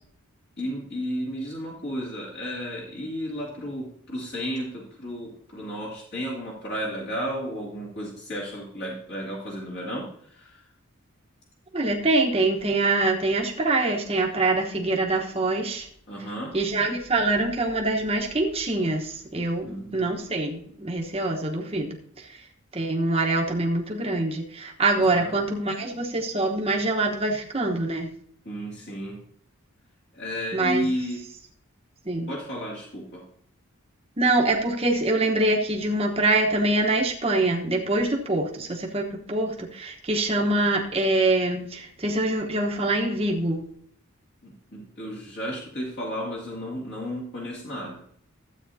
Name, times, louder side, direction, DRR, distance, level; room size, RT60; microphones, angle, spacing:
voice 1, 0.6-10.6 16.1-16.5 19.7-20.1 25.0-25.3 28.4-29.2 30.1-31.2 32.3-33.2 44.4-48.0, equal, 50° left, -6 dB, 2.4 m, -33 dB
voice 2, 11.7-15.9 16.5-21.9 22.2-22.4 22.7-28.1 30.5-30.9 32.0-32.3 34.2-43.6, right 2 dB, 25° right, 0 dB, 1.1 m, -24 dB
13.0 x 8.3 x 2.8 m, 0.63 s
head